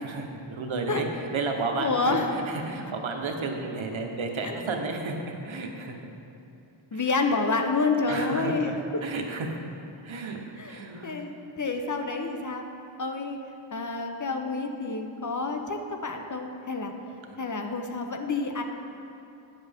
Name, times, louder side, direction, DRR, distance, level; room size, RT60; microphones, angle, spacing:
voice 1, 0.0-5.2 5.4-6.0 6.9-7.0 8.1-9.6 10.0-10.4 10.7-11.2, right 3 dB, 75° right, 3 dB, 0.9 m, -32 dB
voice 2, 1.7-2.3 4.4-4.6 6.9-8.7 10.6-11.3 11.6-12.6 13.0-13.4 13.7-16.9 17.4-18.6, left 3 dB, 40° left, 4 dB, 0.7 m, -28 dB
9.6 x 7.3 x 3.5 m, 2.7 s
wide cardioid pair, 75°, 48 cm